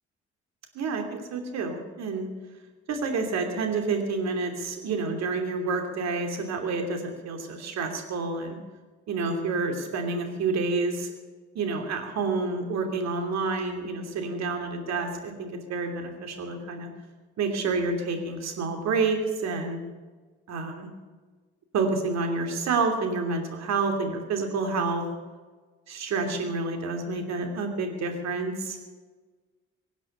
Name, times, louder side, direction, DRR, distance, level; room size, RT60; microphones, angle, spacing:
voice 1, 0.7-2.3 2.9-8.6 9.1-11.1 11.5-16.9 17.4-19.8 20.5-20.9 21.7-25.0 25.9-28.8, right 3 dB, 55° right, 4 dB, 2.9 m, -29 dB
23.5 x 8.5 x 6.7 m, 1.4 s
figure-of-eight pair, 45°, 33 cm